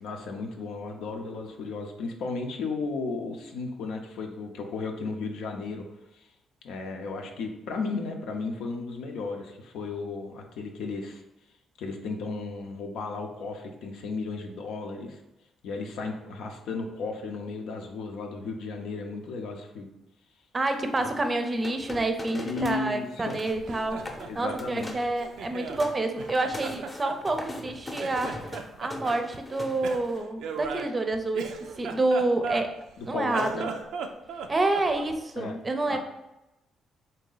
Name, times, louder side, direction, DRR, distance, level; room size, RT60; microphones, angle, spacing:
voice 1, 0.0-5.9 6.1-6.3 6.6-11.2 11.8-15.2 15.6-19.9 22.3-23.4 24.2-24.9 33.0-33.7 35.4-35.6 35.9-36.0, left 3 dB, 85° left, 3 dB, 0.6 m, -34 dB
voice 2, 20.5-24.0 24.4-28.4 28.8-31.5 31.8-32.7 33.1-33.7 34.5-36.0, right 2 dB, 25° right, 6 dB, 0.5 m, -28 dB
sound 1, 21.0-22.8 23.1-23.6 23.9-24.3 24.6-25.1 25.5-30.2, left 1 dB, 20° left, 0.7 m, -40 dB
Laughter, 23.5-25.8 26.2-27.7 28.0-29.2 29.8-32.9 33.2-35.2, right 5 dB, 80° right, 0.4 m, -37 dB
3.9 x 2.7 x 3.9 m, 0.94 s
cardioid pair, 90°, 0 cm